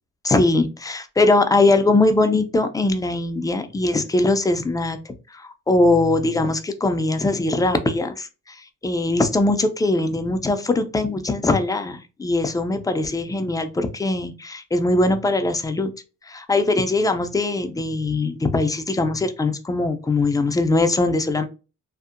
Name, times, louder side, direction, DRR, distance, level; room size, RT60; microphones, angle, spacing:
voice 1, 0.2-5.0 5.3-15.9 16.3-21.5, left 2 dB, 10° left, 8 dB, 0.3 m, -21 dB
2.6 x 2.0 x 2.4 m, 0.31 s
cardioid pair, 90°, 30 cm